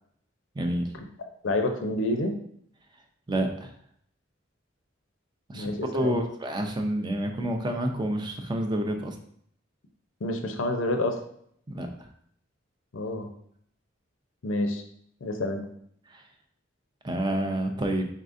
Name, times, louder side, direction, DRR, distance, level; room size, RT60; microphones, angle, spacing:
voice 1, 0.5-0.9 3.3-3.7 5.5-9.2 11.7-12.1 16.1-16.2 17.0-18.1, right 1 dB, 20° right, 4 dB, 0.4 m, -29 dB
voice 2, 1.4-2.4 5.5-6.2 10.2-11.2 12.9-13.3 14.4-14.8 15.2-15.6, left 1 dB, 80° left, 5 dB, 0.6 m, -28 dB
4.1 x 3.6 x 2.5 m, 0.66 s
head